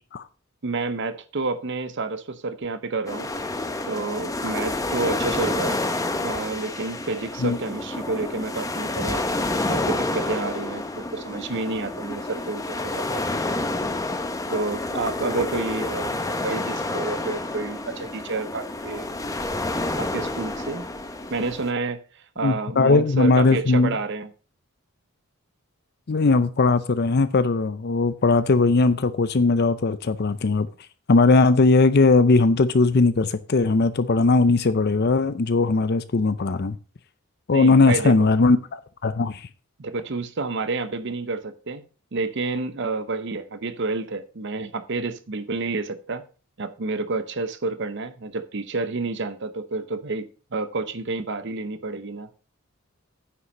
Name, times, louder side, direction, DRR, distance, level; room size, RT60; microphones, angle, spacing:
voice 1, 0.6-3.3 3.9-5.8 6.2-13.6 14.5-19.1 20.0-20.8 21.3-24.3 37.5-38.2 39.8-41.8 42.1-46.2 46.6-52.3, right 3 dB, 55° right, 0.7 m, -29 dB
sound 1, 3.1-21.7, left 2 dB, 15° left, 1.0 m, -29 dB
voice 2, 22.4-24.0 26.1-30.7 31.1-36.8 37.5-39.5, left 3 dB, 50° left, 0.6 m, -19 dB
9.7 x 5.8 x 5.3 m
head